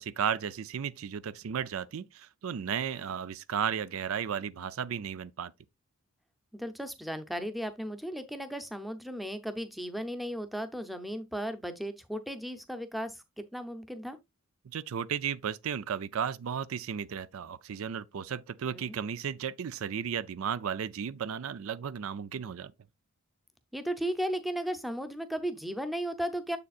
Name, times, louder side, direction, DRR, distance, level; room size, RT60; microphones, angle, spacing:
voice 1, 0.0-5.5 14.7-22.7, right 7 dB, 70° right, 0.4 m, -34 dB
voice 2, 6.5-14.2 18.6-19.0 23.7-26.6, equal, ahead, 0.6 m, -35 dB
7.3 x 6.8 x 2.4 m
head